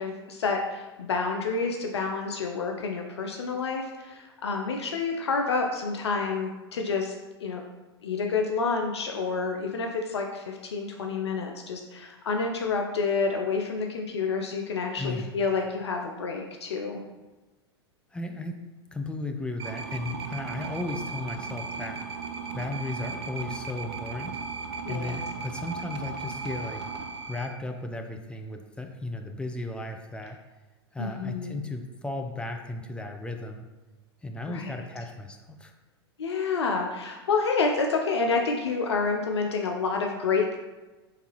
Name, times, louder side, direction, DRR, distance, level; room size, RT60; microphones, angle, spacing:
voice 1, 0.0-7.1 7.4-7.6 8.0-17.0 24.9-25.2 31.0-31.5 34.5-34.7 36.2-40.6, left 4 dB, 80° left, 2 dB, 0.5 m, -29 dB
voice 2, 15.0-15.3 18.1-18.6 18.9-22.0 22.5-24.3 24.9-26.8 27.3-30.4 30.9-33.6 34.2-35.7, left 2 dB, 5° left, 4 dB, 0.4 m, -35 dB
sound 1, 19.6-27.5, right 4 dB, 70° right, 0.5 m, -36 dB
4.8 x 3.4 x 2.9 m, 1.1 s
hypercardioid pair, 100°, 14 cm